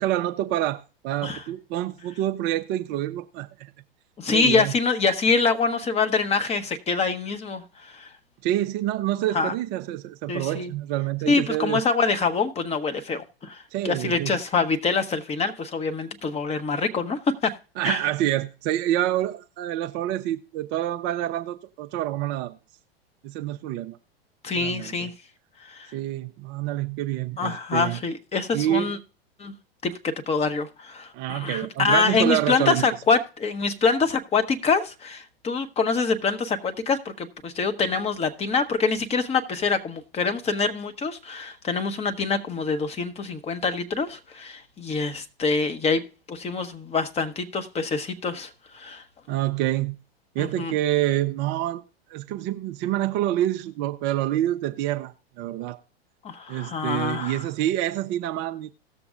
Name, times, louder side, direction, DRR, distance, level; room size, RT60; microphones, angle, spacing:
voice 1, 0.0-3.7 4.3-4.7 8.4-11.8 13.7-14.4 17.8-22.5 23.2-24.0 24.6-25.1 25.9-28.0 28.5-29.0 31.1-32.9 49.3-50.0 50.3-51.8 52.1-55.8 56.5-58.7, right 13 dB, 35° right, 0.5 m, -27 dB
voice 2, 4.2-8.1 9.3-9.5 10.3-10.7 11.3-17.5 17.8-18.0 24.4-25.1 25.6-25.9 27.4-29.0 29.4-29.5 29.8-49.0 50.4-50.7 56.2-57.4, left 4 dB, 20° left, 0.9 m, -25 dB
17.5 x 6.9 x 2.5 m
figure-of-eight pair, 95°, 31 cm